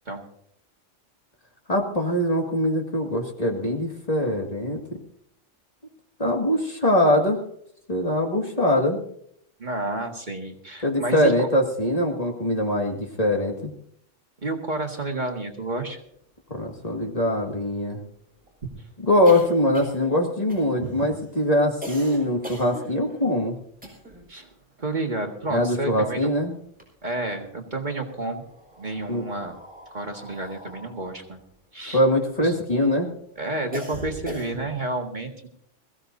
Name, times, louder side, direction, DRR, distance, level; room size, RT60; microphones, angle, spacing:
voice 1, 1.7-4.8 6.2-7.4 7.9-9.0 10.8-13.7 16.5-18.0 19.0-23.6 25.5-26.5 29.1-29.2 31.9-33.1, left 1 dB, 30° left, 1 dB, 2.1 m, -22 dB
voice 2, 9.6-11.3 14.4-16.0 18.6-18.7 20.8-20.9 24.3-24.5 24.8-26.3 27.0-28.5 28.8-29.6 29.9-31.4 31.7-32.0 32.4-32.5 33.4-35.5, right 2 dB, 40° right, 3 dB, 1.8 m, -30 dB
sound 1, 16.1-16.2 16.5-16.6 16.9-24.3 24.6-26.2 26.5-27.5 28.2-32.7 33.1-34.9, equal, 5° right, 5.4 m, -42 dB
22.0 x 15.5 x 2.7 m, 0.67 s
omnidirectional pair, 1.3 m